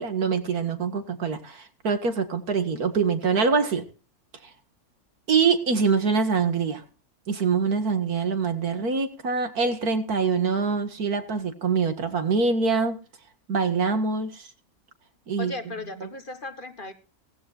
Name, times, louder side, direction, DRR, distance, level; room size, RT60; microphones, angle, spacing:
voice 1, 0.0-3.8 5.3-6.8 7.3-13.0 13.5-14.5 15.3-15.5 16.0-16.1, right 5 dB, 90° right, 8 dB, 2.4 m, -24 dB
voice 2, 15.4-16.9, left 2 dB, 35° left, 9 dB, 1.6 m, -36 dB
17.5 x 15.5 x 2.5 m, 0.35 s
omnidirectional pair, 1.5 m